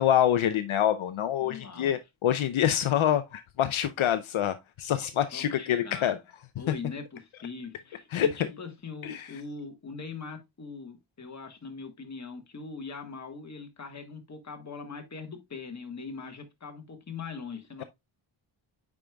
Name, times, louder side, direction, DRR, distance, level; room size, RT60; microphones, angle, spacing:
voice 1, 0.0-6.2 8.1-8.3 9.0-9.3, left 10 dB, 75° left, 0.6 m, -26 dB
voice 2, 1.4-2.0 5.3-6.2 6.6-17.8, left 4 dB, 35° left, 1.4 m, -41 dB
8.9 x 4.9 x 2.2 m
wide cardioid pair, 105°, 49 cm